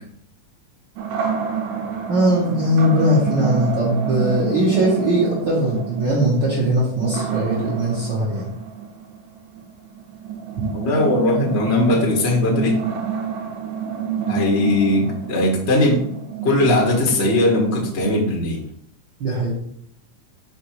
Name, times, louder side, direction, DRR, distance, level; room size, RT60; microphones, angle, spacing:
sound 1, 1.0-18.7, right 7 dB, 85° right, 2.3 m, -29 dB
voice 1, 2.1-8.5 19.2-19.6, equal, 50° right, -6 dB, 1.5 m, -20 dB
voice 2, 10.7-12.8 14.3-16.0 16.4-18.6, left 2 dB, 45° left, -2 dB, 0.8 m, -19 dB
5.5 x 4.2 x 4.6 m, 0.68 s
omnidirectional pair, 3.5 m